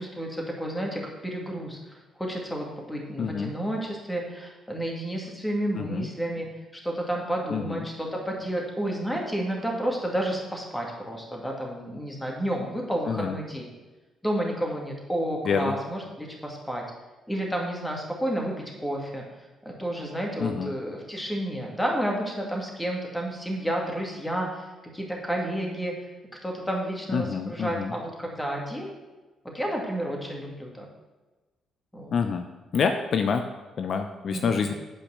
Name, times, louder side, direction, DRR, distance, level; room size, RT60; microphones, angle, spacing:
voice 1, 0.0-1.8 2.2-6.5 6.8-13.7 14.2-16.8 17.3-19.2 19.6-24.6 24.9-25.9 26.4-28.9 29.4-30.8 31.9-32.1 34.3-34.7, right 1 dB, 10° left, -1 dB, 2.3 m, -31 dB
voice 2, 3.2-3.5 5.8-6.1 7.5-7.9 13.1-13.4 15.5-15.7 20.4-20.7 27.1-27.9 32.1-32.4 32.7-33.4 33.8-34.7, left 6 dB, 55° left, 6 dB, 0.6 m, -27 dB
8.8 x 5.1 x 6.5 m, 1.2 s
cardioid pair, 90°, 0 cm